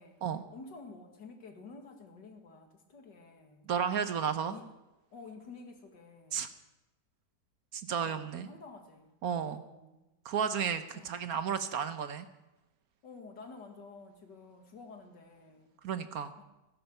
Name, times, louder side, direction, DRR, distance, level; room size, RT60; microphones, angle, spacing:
voice 1, 0.5-3.7 4.5-4.7 5.1-6.4 8.0-9.2 9.4-10.0 10.9-11.2 13.0-15.7 16.4-16.5, left 4 dB, 80° left, 4 dB, 2.5 m, -50 dB
voice 2, 3.7-4.5 6.3-6.5 7.7-8.5 9.2-9.6 10.2-12.3 15.8-16.3, right 7 dB, 65° right, 10 dB, 1.2 m, -33 dB
17.5 x 10.5 x 6.6 m, 1.0 s
omnidirectional pair, 1.8 m